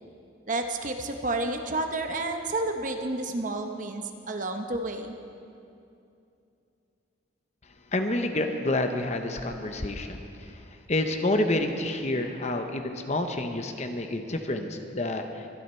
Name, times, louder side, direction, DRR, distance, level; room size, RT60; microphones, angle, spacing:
voice 1, 0.5-5.1, right 2 dB, 40° right, 5 dB, 0.8 m, -30 dB
voice 2, 7.9-10.3 10.9-15.4, left 2 dB, 35° left, 6 dB, 0.8 m, -28 dB
23.0 x 10.0 x 4.4 m, 2.6 s
head